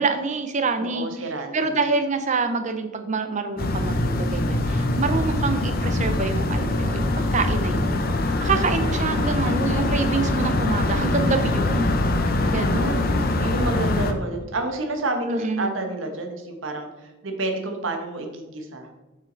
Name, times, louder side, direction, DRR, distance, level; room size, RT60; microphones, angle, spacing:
voice 1, 0.0-8.0 8.2-11.9 12.5-13.2 15.3-15.7, right 4 dB, 35° right, 8 dB, 0.6 m, -26 dB
voice 2, 0.8-1.7 7.9-8.5 12.4-13.0 13.4-18.9, right 2 dB, 70° right, 4 dB, 1.0 m, -30 dB
sound 1, 3.6-14.1, left 2 dB, 45° left, 0.6 m, -23 dB
6.4 x 5.7 x 3.8 m, 1.1 s
head